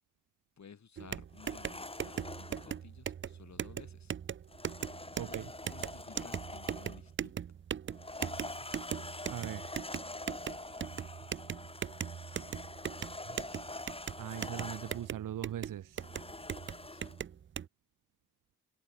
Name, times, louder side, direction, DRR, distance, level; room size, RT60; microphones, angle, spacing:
voice 1, 0.6-4.1 5.3-7.4 16.9-17.1, left 6 dB, 60° left, 5.1 m, -55 dB
sound 1, 1.0-17.7, right 8 dB, 40° right, 0.5 m, -40 dB
sound 2, 1.3-2.8 4.5-7.1 7.9-15.1 16.0-17.2, left 2 dB, 20° left, 2.8 m, -45 dB
voice 2, 5.2-5.5 9.3-9.8 14.2-16.0, right 11 dB, 90° right, 1.2 m, -40 dB
cardioid pair, 60°, 31 cm